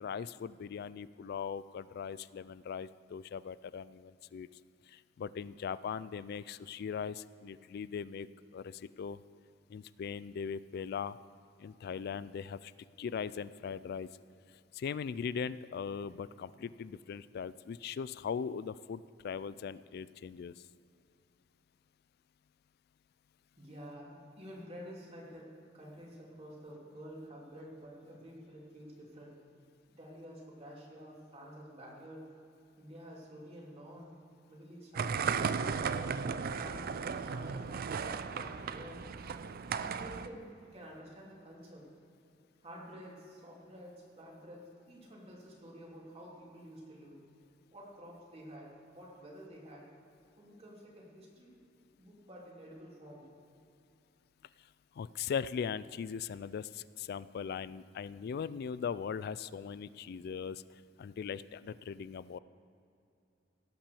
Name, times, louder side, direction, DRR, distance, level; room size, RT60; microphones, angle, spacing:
voice 1, 0.0-4.5 4.9-8.3 8.5-9.2 9.7-11.2 11.6-12.7 13.0-14.1 14.7-20.5 55.0-60.6 61.0-62.4, left 6 dB, 55° left, 17 dB, 0.3 m, -39 dB
voice 2, 23.6-29.4 30.0-32.2 32.8-34.1 34.5-36.8 37.2-39.0 39.7-41.9 42.6-47.2 47.7-49.9 50.4-51.6 52.0-53.3, equal, 35° right, -4 dB, 2.9 m, -50 dB
sound 1, 34.9-40.3, right 6 dB, 50° right, 0.4 m, -35 dB
17.0 x 5.8 x 6.9 m, 2.7 s
head